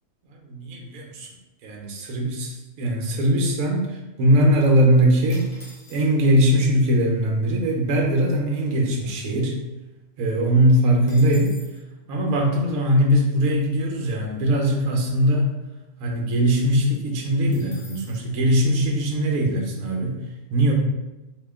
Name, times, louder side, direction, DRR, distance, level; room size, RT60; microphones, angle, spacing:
voice 1, 0.3-1.3 1.6-5.5 5.9-9.5 10.2-11.5 12.1-15.5 16.0-20.1 20.5-20.7, equal, 70° right, 0 dB, 1.1 m, -21 dB
sound 1, 5.3-6.4 7.2-7.3 7.5-7.8 8.2-9.7 10.1-10.2 10.4-11.8 17.5-18.2, left 1 dB, 45° left, 0.4 m, -48 dB
2.9 x 2.7 x 3.4 m, 1.0 s
omnidirectional pair, 1.6 m